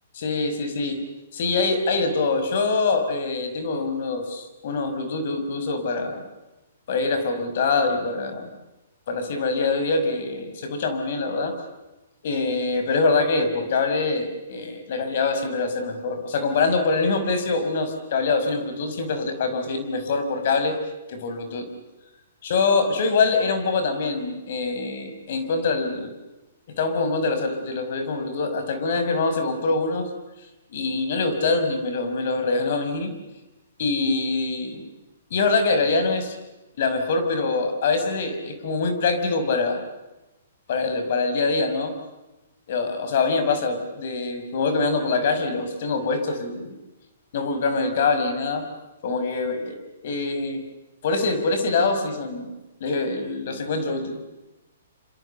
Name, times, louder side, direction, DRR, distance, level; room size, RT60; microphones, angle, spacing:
voice 1, 0.1-1.0 1.3-6.2 6.9-8.5 9.1-11.5 12.2-20.8 21.1-21.7 22.4-26.1 26.7-30.1 30.7-33.1 33.8-34.9 35.3-36.4 36.8-39.8 40.7-41.9 42.7-46.8 47.3-48.7 49.0-50.6 51.0-52.5 52.8-54.2, left 3 dB, 60° left, 8 dB, 5.6 m, -24 dB
27.5 x 27.0 x 7.0 m, 1.0 s
hypercardioid pair, 130°, 0 cm